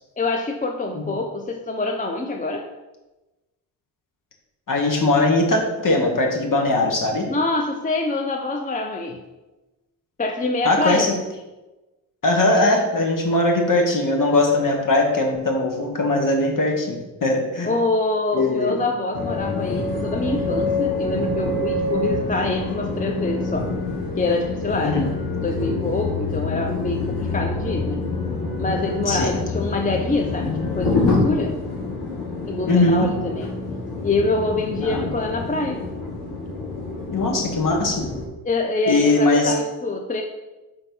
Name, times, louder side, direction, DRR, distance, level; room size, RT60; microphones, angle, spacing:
voice 1, 0.2-2.7 7.3-9.2 10.2-11.1 17.6-23.7 24.2-25.1 25.3-28.0 28.6-31.6 32.5-33.5 34.0-35.9 38.4-40.2, left 2 dB, 20° left, 3 dB, 0.6 m, -25 dB
voice 2, 4.7-7.3 10.6-11.1 12.2-17.7 18.3-18.8 24.8-25.1 29.1-29.3 32.7-33.1 34.8-35.1 37.1-38.1 38.9-39.5, left 2 dB, 45° left, 1 dB, 1.5 m, -20 dB
sound 1, 19.1-38.3, left 3 dB, 65° left, 1.7 m, -26 dB
4.4 x 4.0 x 5.3 m, 1.1 s
hypercardioid pair, 45°, 45 cm